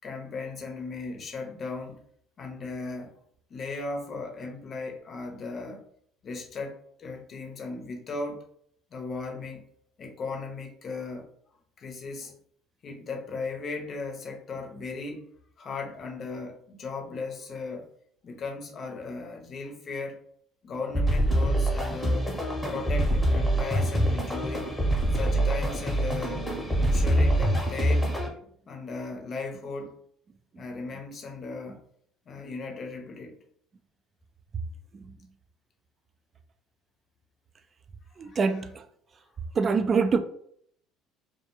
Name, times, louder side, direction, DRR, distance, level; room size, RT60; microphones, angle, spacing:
voice 1, 0.0-2.0 2.4-3.1 3.5-5.8 6.2-8.4 8.9-9.7 10.0-11.3 11.8-12.3 12.8-15.3 15.6-17.9 18.2-20.2 20.6-22.3 22.7-24.7 25.1-26.5 26.8-28.1 28.7-30.0 30.6-31.8 32.3-33.4 38.2-38.6, left 3 dB, 45° left, 0.6 m, -37 dB
sound 1, 21.0-28.3, right 1 dB, 5° left, 0.8 m, -25 dB
voice 2, 38.2-38.8 39.6-40.2, right 5 dB, 35° right, 0.3 m, -24 dB
2.3 x 2.1 x 2.9 m
supercardioid pair, 95°, 0 cm